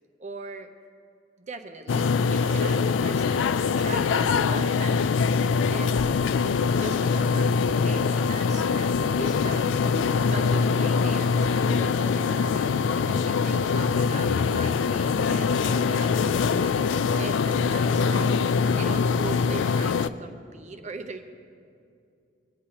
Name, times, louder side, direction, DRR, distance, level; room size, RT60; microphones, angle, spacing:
voice 1, 0.2-0.7 1.4-3.5 3.8-6.0 6.7-7.5 7.8-9.8 10.2-16.2 16.6-16.7 17.1-21.2, right 3 dB, 40° right, 7 dB, 0.8 m, -40 dB
sound 1, 1.9-20.1, left 5 dB, 85° left, 0.3 m, -23 dB
sound 2, 3.4-3.6 4.5-4.6 5.5-5.7 6.6-6.8 7.7-7.8 8.8-8.9 9.8-10.0 10.9-11.1, left 5 dB, 40° left, 1.1 m, -40 dB
20.5 x 9.5 x 2.9 m, 2.4 s
head